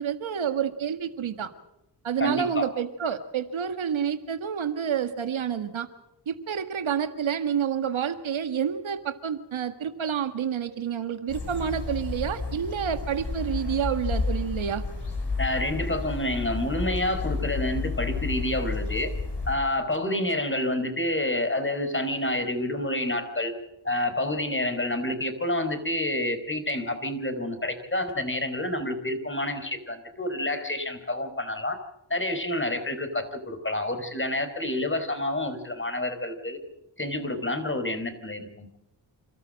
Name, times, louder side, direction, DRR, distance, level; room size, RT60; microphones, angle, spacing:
voice 1, 0.0-1.5 2.0-5.9 6.3-14.8, right 8 dB, 85° right, 9 dB, 1.8 m, -29 dB
voice 2, 2.2-2.7 15.4-19.1 19.5-23.5 23.8-31.8 32.1-36.6 37.0-38.7, left 1 dB, 25° left, 9 dB, 4.3 m, -28 dB
sound 1, 11.3-19.5, left 3 dB, 60° left, 6.8 m, -31 dB
28.0 x 13.5 x 7.6 m, 0.88 s
cardioid pair, 60°, 46 cm